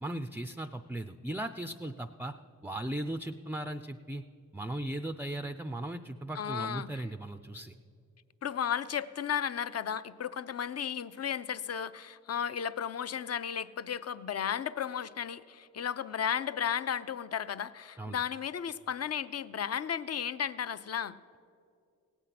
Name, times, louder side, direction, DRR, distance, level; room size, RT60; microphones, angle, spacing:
voice 1, 0.0-2.3 2.6-4.2 4.5-7.8 18.0-18.2, right 1 dB, 5° right, 9 dB, 0.3 m, -37 dB
voice 2, 6.3-7.0 8.4-21.2, left 8 dB, 45° left, 14 dB, 0.5 m, -34 dB
17.5 x 8.1 x 5.8 m, 2.4 s
cardioid pair, 65°, 34 cm